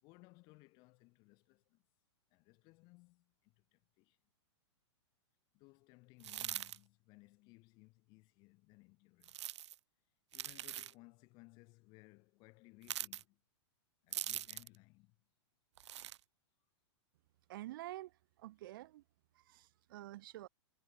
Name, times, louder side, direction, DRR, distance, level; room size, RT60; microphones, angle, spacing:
voice 1, 0.0-1.8 2.3-4.2 5.5-9.4 10.3-13.4 14.0-15.2, left 25 dB, 30° left, 2.3 m, -62 dB
sound 1, 6.2-6.8 9.2-9.8 10.3-10.9 12.8-13.2 14.1-14.8 15.8-16.2, right 12 dB, 70° right, 0.7 m, -42 dB
voice 2, 17.5-18.1 18.4-19.0 19.5-20.5, right 16 dB, 45° right, 0.9 m, -48 dB
supercardioid pair, 170°, 15 cm